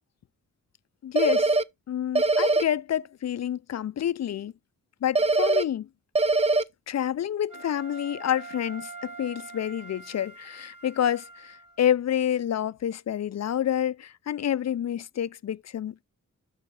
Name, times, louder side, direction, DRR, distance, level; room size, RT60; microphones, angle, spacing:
voice 1, 1.0-1.5 1.9-4.5 5.0-5.9 6.9-16.0, left 10 dB, 50° left, 0.5 m, -28 dB
sound 1, 1.2-1.6 2.2-2.6 5.2-5.6 6.2-6.6, right 3 dB, 20° right, 0.4 m, -22 dB
Wind instrument woodwind instrument, 7.5-11.8, right 3 dB, 60° right, 2.9 m, -44 dB
12.0 x 4.3 x 3.7 m
cardioid pair, 55°, 34 cm